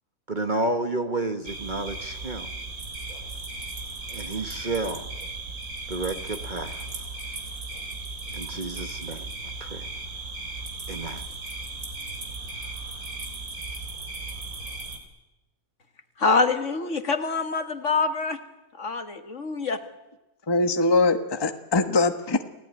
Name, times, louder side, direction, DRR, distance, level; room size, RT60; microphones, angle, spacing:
voice 1, 0.3-2.5 4.1-5.1 5.9-6.9 8.3-9.2 9.6-9.9 10.9-11.2, right 2 dB, 35° right, 1.3 m, -30 dB
sound 1, 1.5-15.0, right 3 dB, 65° right, 4.0 m, -36 dB
voice 2, 16.2-18.4 18.8-19.8, left 4 dB, 50° left, 2.0 m, -25 dB
voice 3, 20.5-22.4, left 3 dB, 15° left, 1.2 m, -22 dB
29.5 x 17.5 x 9.6 m
omnidirectional pair, 1.6 m